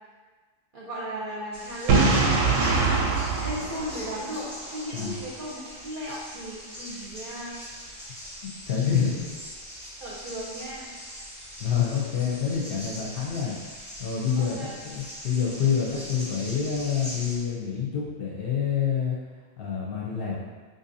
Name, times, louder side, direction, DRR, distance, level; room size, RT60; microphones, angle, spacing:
voice 1, 0.7-3.0 3.4-7.6 10.0-10.9 14.3-14.7, equal, 55° right, -6 dB, 0.7 m, -36 dB
sound 1, 1.5-17.4, equal, 5° right, 0.8 m, -41 dB
Boom, 1.9-4.7, right 4 dB, 90° right, 0.9 m, -23 dB
voice 2, 8.4-9.1 11.6-13.5 14.0-19.2 19.6-20.4, left 7 dB, 60° left, -5 dB, 0.7 m, -27 dB
3.7 x 2.7 x 2.6 m, 1.4 s
omnidirectional pair, 1.3 m